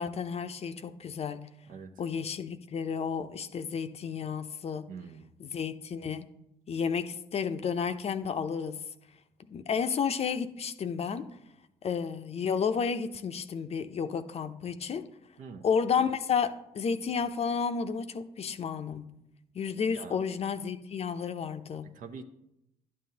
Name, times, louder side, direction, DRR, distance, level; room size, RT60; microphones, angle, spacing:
voice 1, 0.0-1.5 2.0-4.9 5.4-6.3 6.7-8.8 9.5-11.3 11.8-15.1 15.6-19.1 19.5-21.9, left 6 dB, 40° left, 0.6 m, -31 dB
voice 2, 4.9-5.3 15.4-15.6 19.9-20.2 21.9-22.2, right 5 dB, 60° right, 0.8 m, -44 dB
11.0 x 7.4 x 2.8 m
hypercardioid pair, 50°, 15 cm